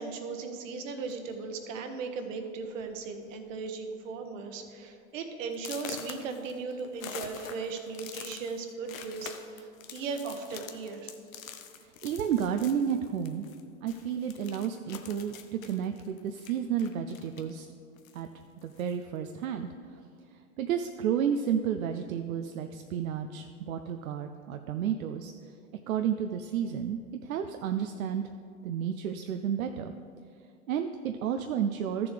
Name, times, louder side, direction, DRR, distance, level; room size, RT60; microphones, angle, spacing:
voice 1, 0.0-11.1, right 4 dB, 65° right, 6 dB, 1.3 m, -37 dB
sound 1, 1.0-1.4 2.2-2.3 2.7-2.9 3.2-3.7 4.1-4.2 4.7-4.8 5.5-13.6 13.9-17.6 18.0-19.0, left 8 dB, 80° left, 0.9 m, -46 dB
voice 2, 12.0-13.5 13.8-17.7 18.1-18.3 18.6-19.7 20.6-25.3 25.9-28.2 28.6-29.9 30.7-32.1, right 8 dB, 85° right, 6 dB, 0.6 m, -31 dB
13.0 x 7.0 x 3.4 m, 2.3 s
hypercardioid pair, 110°, 41 cm